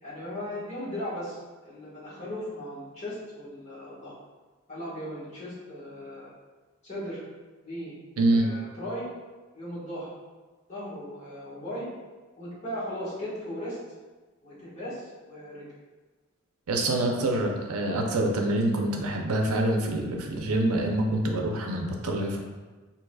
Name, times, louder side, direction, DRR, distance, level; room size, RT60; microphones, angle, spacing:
voice 1, 0.0-4.1 4.7-6.3 6.8-7.2 7.6-7.9 8.3-9.1 9.5-10.1 10.7-11.9 12.4-13.8 14.4-15.7 17.2-17.3, equal, 30° left, -10 dB, 1.4 m, -37 dB
voice 2, 8.2-8.5 16.7-22.4, right 1 dB, 90° right, 2 dB, 0.5 m, -26 dB
4.6 x 2.8 x 2.3 m, 1.3 s
head